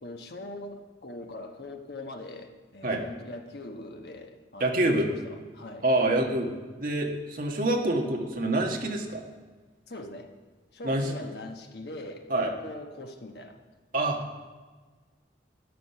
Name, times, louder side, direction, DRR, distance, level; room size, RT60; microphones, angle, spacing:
voice 1, 0.0-5.8 9.9-10.3 10.7-13.6, left 1 dB, 60° left, 4 dB, 1.2 m, -42 dB
voice 2, 4.6-5.1 5.8-9.2 10.8-11.0 12.3-12.5 13.9-14.2, right 1 dB, 50° right, 1 dB, 1.4 m, -26 dB
12.5 x 9.4 x 5.7 m, 1.4 s
head